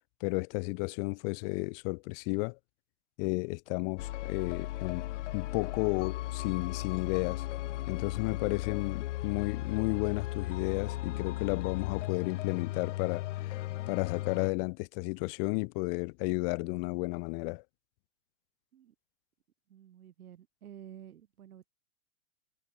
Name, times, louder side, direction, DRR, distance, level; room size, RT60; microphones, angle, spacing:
voice 1, 0.2-2.6 3.2-7.4 7.9-13.6 13.9-17.6, left 32 dB, 40° left, 2.7 m, -33 dB
sound 1, 4.0-14.5, left 16 dB, 55° left, 0.9 m, -36 dB
voice 2, 19.7-21.7, right 10 dB, 75° right, 3.5 m, -51 dB
hypercardioid pair, 145°, 44 cm